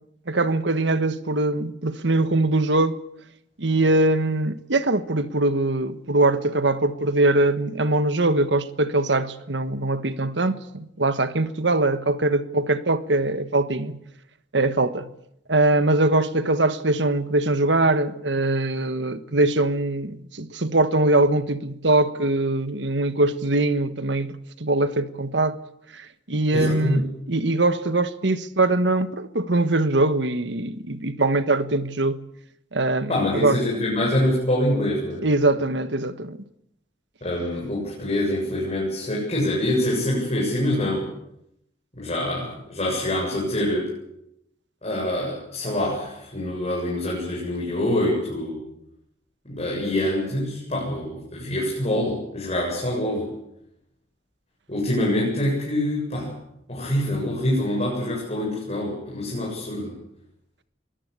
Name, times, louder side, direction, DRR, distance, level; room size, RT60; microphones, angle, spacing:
voice 1, 0.3-3.0 3.6-14.0 14.5-15.1 15.5-25.6 25.9-32.2 32.7-33.6 35.2-36.4, right 2 dB, 85° right, 1.4 m, -22 dB
voice 2, 26.5-27.0 33.1-35.2 37.2-41.0 41.9-43.9 44.8-48.6 49.4-53.3 54.7-56.3 56.7-59.9, left 1 dB, 35° left, 8.0 m, -25 dB
23.5 x 18.0 x 8.3 m
head